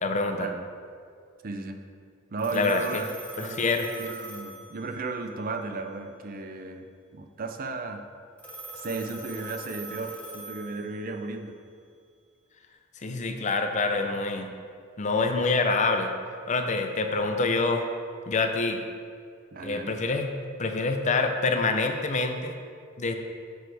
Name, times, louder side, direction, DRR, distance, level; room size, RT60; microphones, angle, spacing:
voice 1, 0.0-0.5 2.5-3.0 3.4-3.9 13.0-14.5 15.0-16.1 16.5-17.8 18.3-18.8 19.6-20.3 20.6-22.5 23.0-23.1, left 3 dB, 35° left, 6 dB, 0.5 m, -26 dB
voice 2, 1.4-1.8 2.3-3.1 3.4-3.6 4.0-6.9 7.1-8.0 8.7-11.5 19.5-19.9, right 3 dB, 45° right, 5 dB, 0.5 m, -34 dB
Telephone, 2.4-5.2 8.4-11.2, right 1 dB, 5° left, 1.0 m, -42 dB
9.1 x 6.2 x 3.4 m, 2.2 s
head